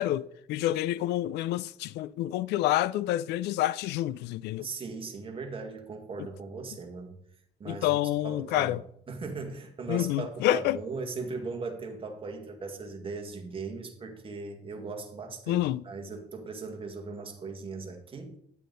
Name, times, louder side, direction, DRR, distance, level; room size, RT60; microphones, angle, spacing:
voice 1, 0.0-4.7 7.7-8.8 9.9-10.8 15.5-15.8, left 14 dB, 80° left, 0.4 m, -28 dB
voice 2, 4.6-7.2 7.6-7.9 8.2-8.8 9.1-18.4, right 4 dB, 30° right, 1.9 m, -38 dB
9.3 x 8.4 x 4.0 m
cardioid pair, 110°, 17 cm